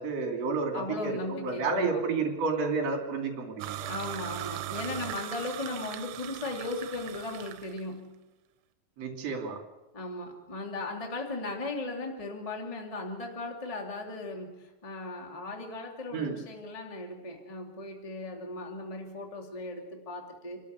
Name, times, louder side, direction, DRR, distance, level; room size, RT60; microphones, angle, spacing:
voice 1, 0.0-3.9 9.0-9.6 16.1-16.4, right 4 dB, 40° right, 3 dB, 3.1 m, -31 dB
voice 2, 0.7-2.0 3.9-8.2 9.9-20.6, left 2 dB, 35° left, 1 dB, 0.5 m, -37 dB
sound 1, 3.6-7.8, right 14 dB, 75° right, 3.0 m, -39 dB
28.0 x 13.0 x 8.2 m, 1.1 s
omnidirectional pair, 5.9 m